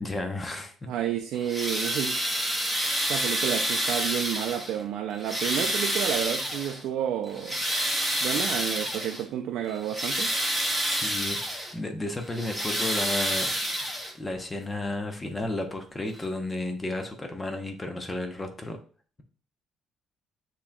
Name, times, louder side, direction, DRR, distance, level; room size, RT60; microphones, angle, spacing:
voice 1, 0.0-0.7 10.8-13.5 14.1-18.8, left 2 dB, 20° left, 0.7 m, -33 dB
voice 2, 0.9-2.2 3.1-7.6 8.2-10.3, right 10 dB, 80° right, 0.4 m, -30 dB
sound 1, 1.4-4.8 5.2-6.8 7.3-9.2 9.7-11.7 12.2-14.3 15.4-15.5 16.1-16.2, equal, ahead, 1.3 m, -28 dB
7.0 x 2.8 x 2.2 m
cardioid pair, 100°, 0 cm